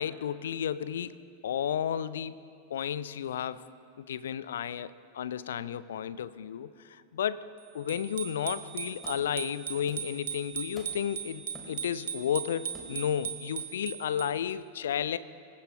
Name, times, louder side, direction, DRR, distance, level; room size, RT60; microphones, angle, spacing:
voice 1, 0.0-2.4 2.7-3.7 4.0-7.5 7.7-15.2, left 9 dB, 60° left, 16 dB, 0.5 m, -33 dB
Bicycle bell, 7.9-14.5, right 8 dB, 65° right, 1.0 m, -39 dB
sound 1, 9.0-9.4 9.9-10.2 10.5-11.2 11.5-12.2 12.7-13.2, equal, 10° left, 2.8 m, -50 dB
26.0 x 16.0 x 2.9 m, 2.5 s
figure-of-eight pair, 90°, 0 cm